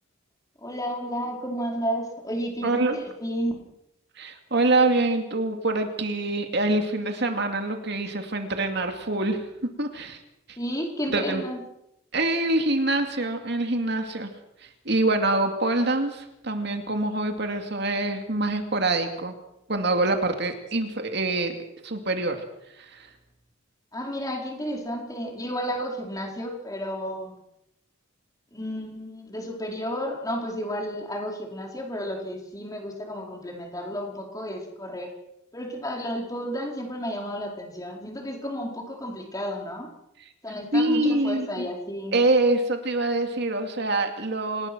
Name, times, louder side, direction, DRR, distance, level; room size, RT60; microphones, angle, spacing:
voice 1, 0.6-3.6 10.6-11.6 23.9-27.3 28.5-35.1 35.5-39.9 40.4-42.2, equal, 15° left, 1 dB, 4.7 m, -32 dB
voice 2, 2.6-3.0 4.2-10.2 10.5-10.6 11.1-11.4 12.1-14.3 14.6-19.3 19.7-21.6 21.8-22.4 22.8-23.1 40.2-40.3 40.7-41.7 42.1-44.7, right 2 dB, 55° right, 5 dB, 2.6 m, -25 dB
27.0 x 19.5 x 6.3 m, 0.83 s
head